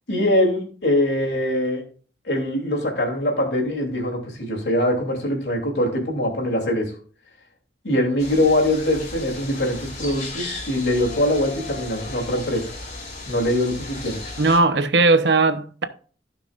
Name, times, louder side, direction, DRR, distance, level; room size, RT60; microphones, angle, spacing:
voice 1, 0.1-1.8 2.3-6.9 7.8-12.7 13.3-14.2, left 1 dB, 75° left, 2.9 m, -22 dB
sound 1, 8.2-14.6, left 2 dB, 45° left, 3.8 m, -35 dB
voice 2, 14.4-15.8, right 3 dB, 80° right, 0.9 m, -18 dB
15.0 x 6.0 x 2.5 m
head